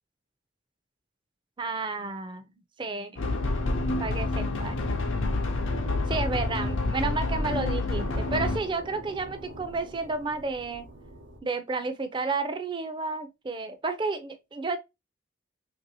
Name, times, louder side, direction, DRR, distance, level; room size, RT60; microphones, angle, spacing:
voice 1, 1.6-2.5 2.8-3.2 4.0-4.7 6.1-10.9 11.4-14.8, right 3 dB, 25° right, 0.4 m, -31 dB
sound 1, 3.2-8.6, left 2 dB, 85° left, 0.6 m, -28 dB
sound 2, 5.6-11.4, right 1 dB, 75° right, 0.8 m, -42 dB
3.2 x 2.6 x 2.7 m
head